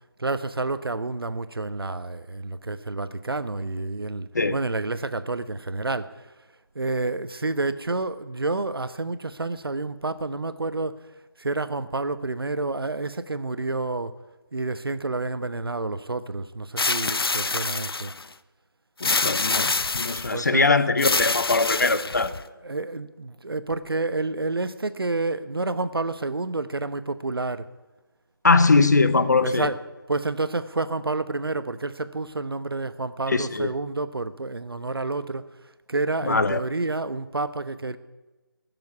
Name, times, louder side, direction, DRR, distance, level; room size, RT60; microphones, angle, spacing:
voice 1, 0.2-6.2 6.7-11.0 11.4-14.2 14.5-18.1 20.3-20.8 22.3-27.7 29.4-29.8 30.1-35.5 35.9-38.0, right 3 dB, 75° right, 13 dB, 1.0 m, -29 dB
sound 1, 16.8-18.2 19.0-20.4 21.0-22.4, left 3 dB, 80° left, 0.6 m, -26 dB
voice 2, 19.0-22.3 28.4-29.7 33.3-33.7 36.2-36.6, left 3 dB, 50° left, 12 dB, 0.9 m, -21 dB
14.0 x 7.1 x 9.6 m, 1.1 s
figure-of-eight pair, 170°, 12 cm